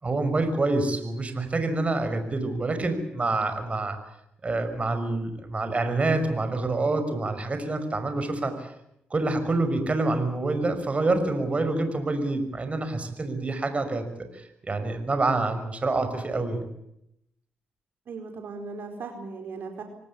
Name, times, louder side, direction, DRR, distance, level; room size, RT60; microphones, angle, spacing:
voice 1, 0.0-4.0 4.4-8.7 9.1-14.0 14.3-16.6, right 2 dB, 35° right, 8 dB, 5.8 m, -27 dB
voice 2, 18.1-19.8, right 4 dB, 65° right, 4 dB, 4.6 m, -37 dB
25.5 x 18.5 x 8.5 m, 0.78 s
supercardioid pair, 60°, 4 cm